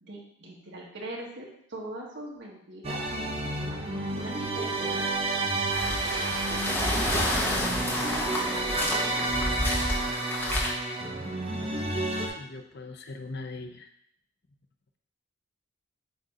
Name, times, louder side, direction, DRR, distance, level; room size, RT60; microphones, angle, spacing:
voice 1, 0.0-5.1 5.8-7.3 7.9-9.4, right 1 dB, 55° right, -3 dB, 1.5 m, -42 dB
sound 1, 2.8-12.3, right 2 dB, 30° right, 0.7 m, -30 dB
sound 2, 5.7-10.7, left 1 dB, 10° left, 1.0 m, -29 dB
voice 2, 12.3-13.9, left 3 dB, 50° left, 6 dB, 0.6 m, -41 dB
7.8 x 2.8 x 5.0 m, 0.69 s
head